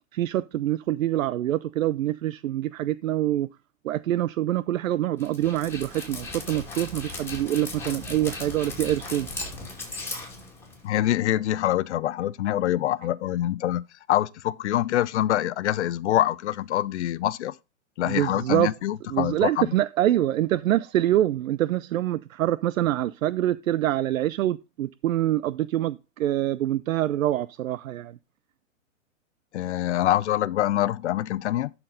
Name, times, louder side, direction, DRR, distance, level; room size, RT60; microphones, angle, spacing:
voice 1, 0.1-3.5 3.8-9.3 18.0-18.7 19.1-28.2, right 13 dB, 75° right, 0.5 m, -25 dB
Dog, 5.2-11.0, left 2 dB, 5° left, 2.4 m, -37 dB
voice 2, 10.8-13.8 14.1-17.5 18.0-19.7 29.5-31.7, left 13 dB, 60° left, 0.6 m, -25 dB
12.0 x 4.4 x 3.9 m
hypercardioid pair, 140°, 40 cm